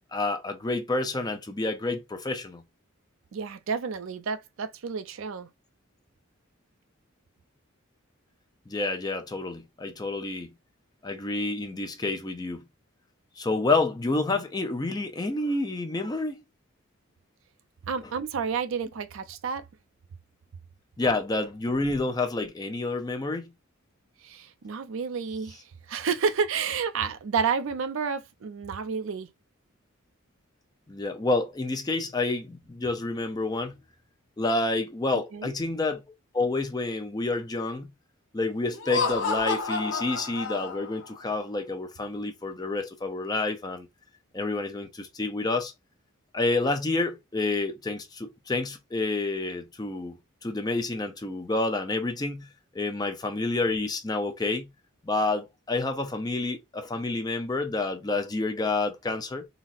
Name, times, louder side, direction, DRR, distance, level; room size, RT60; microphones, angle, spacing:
voice 1, 0.1-2.6 8.7-10.5 11.0-12.6 13.4-16.4 21.0-23.5 30.9-33.7 34.4-36.0 36.3-37.9 38.3-43.9 44.3-45.7 46.3-50.2 50.4-52.5 52.7-54.7 55.0-59.5, left 2 dB, 20° left, 0.4 m, -29 dB
voice 2, 3.3-5.5 17.8-19.6 24.2-29.3 35.3-35.5, right 6 dB, 70° right, 0.4 m, -30 dB
Laughter, 38.7-41.1, left 4 dB, 60° left, 0.6 m, -29 dB
4.0 x 2.0 x 2.4 m
head